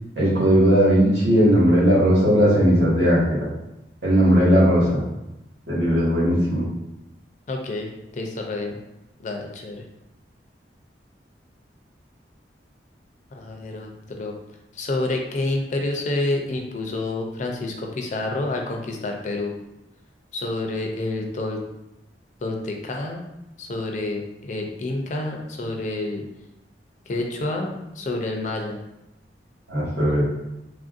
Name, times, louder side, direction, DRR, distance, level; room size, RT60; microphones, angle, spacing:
voice 1, 0.2-3.5 4.0-5.0 5.7-6.6 29.7-30.2, equal, 90° right, -7 dB, 1.5 m, -18 dB
voice 2, 7.5-7.9 8.1-8.8 9.2-9.8 13.3-13.9 14.2-14.3 14.7-19.5 20.3-21.6 22.4-23.2 23.6-26.2 27.1-28.8, left 2 dB, 45° left, 1 dB, 0.4 m, -28 dB
3.2 x 2.6 x 2.4 m, 0.91 s
head